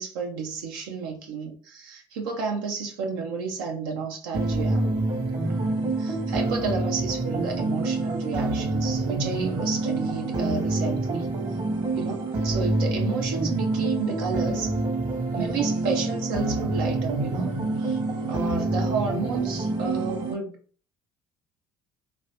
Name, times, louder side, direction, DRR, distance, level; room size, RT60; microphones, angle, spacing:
voice 1, 0.0-4.9 5.4-11.3 11.9-14.7 15.3-17.5 17.8-18.0 18.3-20.6, right 5 dB, 85° right, 0.5 m, -31 dB
sound 1, 4.3-20.3, right 2 dB, 45° right, 1.0 m, -27 dB
2.7 x 2.7 x 3.2 m
hypercardioid pair, 75°, 11 cm